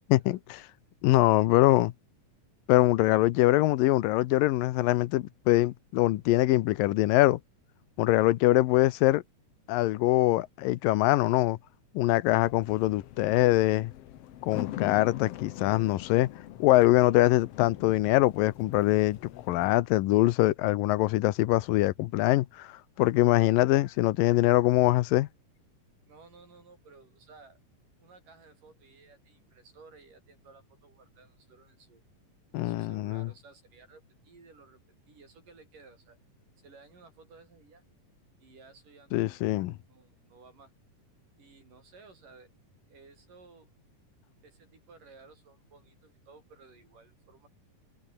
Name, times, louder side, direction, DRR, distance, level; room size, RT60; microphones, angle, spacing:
voice 1, 0.1-0.7 1.0-1.9 2.7-7.4 8.0-9.2 9.7-11.6 11.9-13.9 14.4-16.3 16.6-19.2 19.5-25.3 32.5-33.3 39.1-39.8, left 17 dB, 85° left, 2.6 m, -23 dB
sound 1, 12.3-19.7, left 13 dB, 70° left, 1.5 m, -42 dB
voice 2, 26.0-27.6 28.0-32.0 32.5-36.2 36.6-37.8 38.4-39.4 39.9-40.7 41.4-42.5 42.9-43.7 44.4-47.5, right 4 dB, 70° right, 8.4 m, -56 dB
omnidirectional pair, 3.9 m